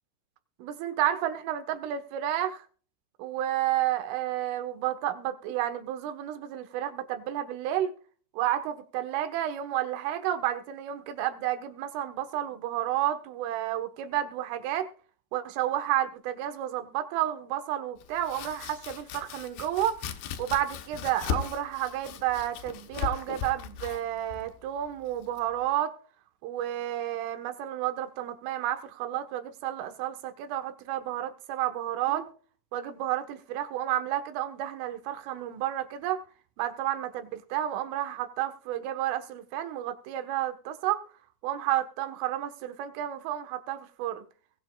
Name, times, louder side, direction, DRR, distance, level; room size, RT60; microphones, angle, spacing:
voice 1, 0.6-2.7 3.2-8.0 8.3-14.9 15.3-20.0 20.4-25.9 26.4-32.3 32.7-36.2 36.6-41.0 41.4-44.2, right 12 dB, 80° right, 3.9 m, -31 dB
Domestic sounds home sounds, 18.0-25.7, left 8 dB, 70° left, 2.7 m, -38 dB
22.0 x 8.9 x 2.4 m
omnidirectional pair, 5.6 m